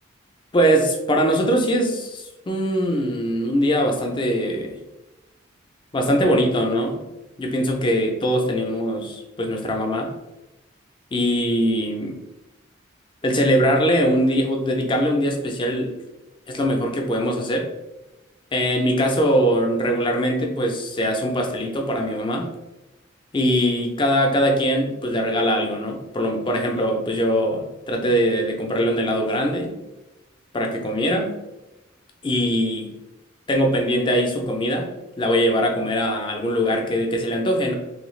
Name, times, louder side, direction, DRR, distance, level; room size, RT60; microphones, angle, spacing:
voice 1, 0.5-4.8 5.9-7.0 7.4-10.1 11.1-12.2 13.2-15.9 16.5-17.7 18.5-22.5 23.3-29.7 30.5-31.3 32.2-32.9 33.5-34.9 35.2-37.8, equal, 25° left, 3 dB, 0.4 m, -22 dB
3.1 x 2.3 x 3.1 m, 1.0 s
head